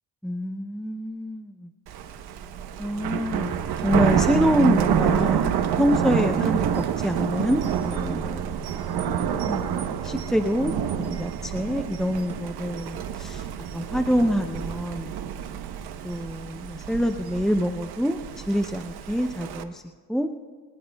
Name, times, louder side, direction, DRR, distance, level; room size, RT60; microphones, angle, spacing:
voice 1, 0.2-1.7 2.8-3.5 3.8-8.6 9.4-13.5 13.7-15.2 16.0-19.8 20.1-20.3, equal, ahead, 6 dB, 0.5 m, -26 dB
Thunder, 1.9-19.6, right 8 dB, 80° right, 0.9 m, -28 dB
23.0 x 19.0 x 2.3 m, 1.5 s
cardioid pair, 105°, 38 cm